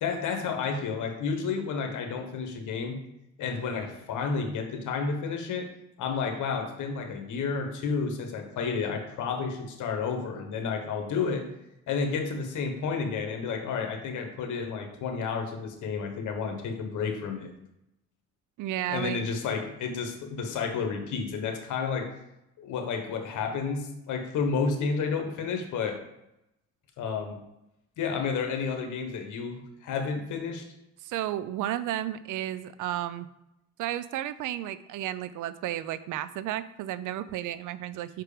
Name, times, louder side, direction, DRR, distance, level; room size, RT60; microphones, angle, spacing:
voice 1, 0.0-3.0 3.4-5.7 6.0-11.5 11.9-17.5 18.9-22.1 22.6-26.0 27.0-27.4 28.0-30.6, left 5 dB, 80° left, 4 dB, 1.3 m, -31 dB
voice 2, 18.6-19.2 31.0-33.3 33.8-38.2, right 12 dB, 85° right, 15 dB, 0.5 m, -33 dB
6.0 x 4.6 x 5.0 m, 0.85 s
cardioid pair, 90°, 30 cm